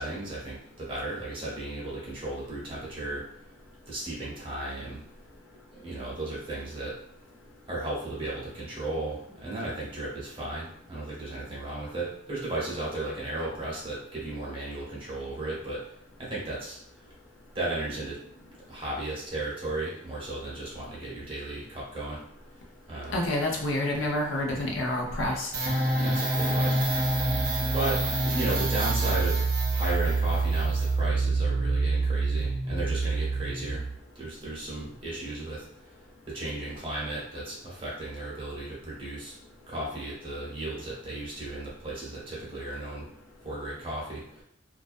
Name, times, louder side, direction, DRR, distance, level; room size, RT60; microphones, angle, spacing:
voice 1, 0.0-3.2 3.9-5.0 5.7-6.9 7.7-15.8 16.2-16.8 17.5-22.2 22.9-23.2 25.9-26.8 27.7-29.4 29.7-33.8 34.1-35.9 36.3-39.3 39.7-43.1 43.4-44.4, right 2 dB, 25° right, -6 dB, 0.8 m, -35 dB
voice 2, 23.1-25.5, left 1 dB, 85° left, 0 dB, 0.6 m, -28 dB
sound 1, 25.5-34.0, right 2 dB, 45° right, 0.4 m, -26 dB
2.4 x 2.2 x 2.4 m, 0.69 s
head